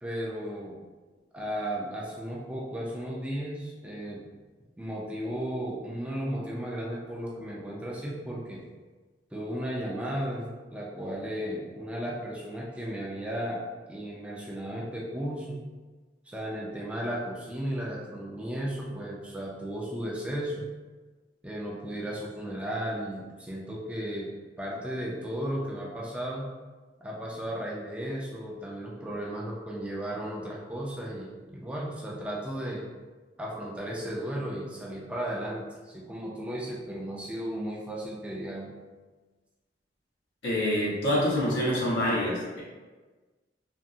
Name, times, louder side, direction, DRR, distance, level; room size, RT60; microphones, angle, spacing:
voice 1, 0.0-0.7 1.3-4.2 4.8-8.6 9.3-13.6 13.9-15.7 16.3-20.7 21.4-24.3 24.6-26.5 27.0-32.8 33.4-38.7, equal, 5° right, -4 dB, 0.4 m, -35 dB
voice 2, 40.4-42.6, left 1 dB, 90° left, -6 dB, 1.0 m, -26 dB
3.4 x 2.0 x 2.6 m, 1.3 s
head